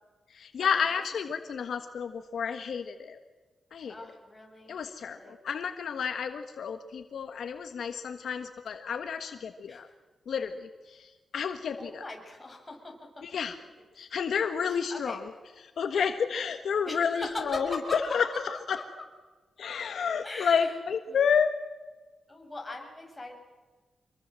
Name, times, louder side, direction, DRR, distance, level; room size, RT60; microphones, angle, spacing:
voice 1, 0.3-3.2 3.7-3.9 4.7-9.9 10.3-12.0 13.2-13.5 14.0-15.2 15.6-18.8 19.6-21.5, left 6 dB, 70° left, 7 dB, 1.5 m, -30 dB
voice 2, 3.9-5.4 9.7-9.9 11.8-13.0 13.9-14.1 14.7-15.2 16.9-18.4 20.2-20.7 21.1-21.2 22.3-23.3, left 2 dB, 15° left, 1 dB, 7.0 m, -40 dB
26.5 x 22.0 x 7.6 m, 1.3 s
wide cardioid pair, 115°, 0 cm